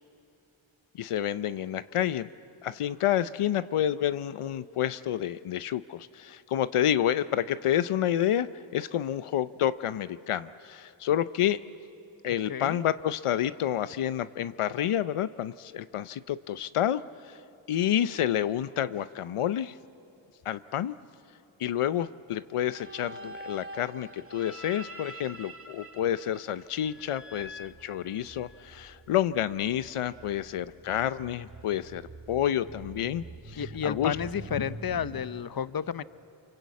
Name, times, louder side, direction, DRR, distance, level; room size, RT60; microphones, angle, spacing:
voice 1, 1.0-2.3 2.6-8.5 8.7-11.6 12.2-17.4 17.7-19.7 20.5-20.9 21.6-34.2, left 11 dB, 85° left, 14 dB, 0.7 m, -29 dB
sound 1, 22.6-28.7, equal, 25° right, 1.6 m, -46 dB
sound 2, 26.8-35.2, right 2 dB, 55° right, 4.4 m, -46 dB
voice 2, 33.6-36.0, left 8 dB, 45° left, 15 dB, 0.8 m, -31 dB
29.5 x 23.5 x 8.3 m, 2.7 s
cardioid pair, 45°, 50 cm